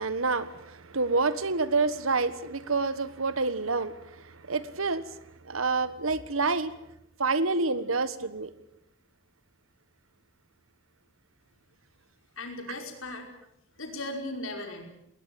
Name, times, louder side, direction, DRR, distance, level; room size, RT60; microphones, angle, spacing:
voice 1, 0.0-5.2 5.4-6.8 7.2-8.5, right 3 dB, 85° right, 14 dB, 1.5 m, -28 dB
voice 2, 12.4-13.3 13.8-14.9, left 2 dB, 75° left, 3 dB, 5.2 m, -37 dB
20.0 x 20.0 x 9.2 m, 0.82 s
head